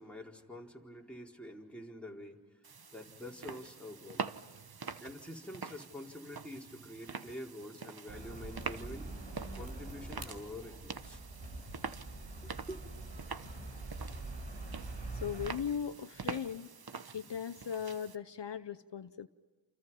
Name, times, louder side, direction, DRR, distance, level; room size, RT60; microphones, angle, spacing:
voice 1, 0.0-2.4 2.9-4.2 5.0-9.1 9.6-11.2 12.7-12.8, left 1 dB, 5° left, -1 dB, 4.3 m, -46 dB
sound 1, 2.6-18.2, right 5 dB, 55° right, 1.1 m, -45 dB
sound 2, 8.1-15.5, right 2 dB, 90° right, 4.8 m, -44 dB
voice 2, 15.1-16.7 17.1-19.3, left 8 dB, 70° left, 11 dB, 0.8 m, -38 dB
29.0 x 28.5 x 5.7 m, 1.4 s
cardioid pair, 40°, 44 cm